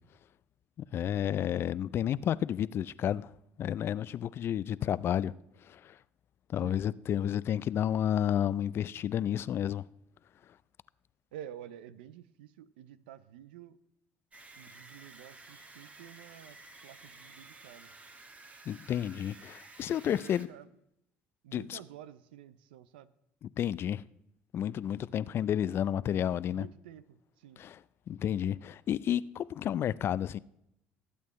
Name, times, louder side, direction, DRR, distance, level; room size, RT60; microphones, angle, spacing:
voice 1, 0.9-3.3 3.6-5.3 5.7-6.0 6.5-9.8 18.7-20.5 21.5-21.8 23.6-24.0 24.5-26.7 27.6-27.8 28.1-30.4, left 10 dB, 50° left, 0.4 m, -31 dB
voice 2, 11.3-13.8 14.6-17.9 19.9-20.7 21.4-23.1 26.5-27.6, right 11 dB, 90° right, 0.6 m, -50 dB
sound 1, 14.3-20.5, right 2 dB, 25° right, 1.4 m, -53 dB
19.5 x 8.4 x 3.2 m
supercardioid pair, 75°, 5 cm